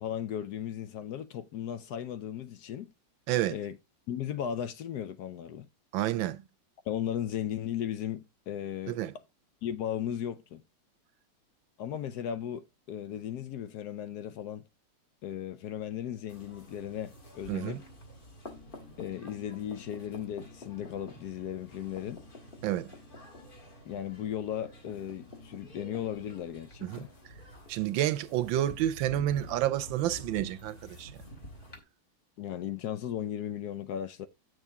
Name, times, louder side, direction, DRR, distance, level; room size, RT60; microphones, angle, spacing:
voice 1, 0.0-2.9 3.5-3.8 4.1-5.7 6.9-9.0 9.6-10.6 11.8-14.6 15.2-17.8 19.0-22.2 23.9-27.1 32.4-34.3, left 10 dB, 70° left, 1.0 m, -36 dB
voice 2, 3.3-3.6 5.9-6.4 8.9-9.1 17.5-17.8 22.6-22.9 26.8-27.0 27.7-31.1, right 13 dB, 85° right, 1.4 m, -29 dB
sound 1, 16.3-31.8, left 1 dB, 30° left, 1.5 m, -49 dB
8.3 x 6.5 x 3.6 m
omnidirectional pair, 2.0 m